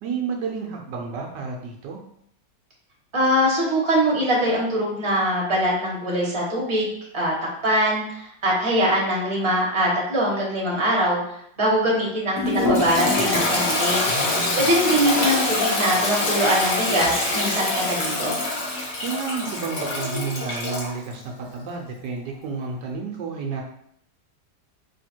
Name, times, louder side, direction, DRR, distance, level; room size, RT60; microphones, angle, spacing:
voice 1, 0.0-2.0 14.1-14.6 19.0-23.6, right 5 dB, 75° right, 1 dB, 1.2 m, -31 dB
voice 2, 3.1-6.9 7.1-7.3 7.6-11.2 11.6-14.0 14.6-18.3, equal, 20° right, -3 dB, 1.0 m, -22 dB
Toilet flush, 12.4-20.9, left 2 dB, 50° left, 1.2 m, -24 dB
3.5 x 2.7 x 4.3 m, 0.71 s
omnidirectional pair, 1.9 m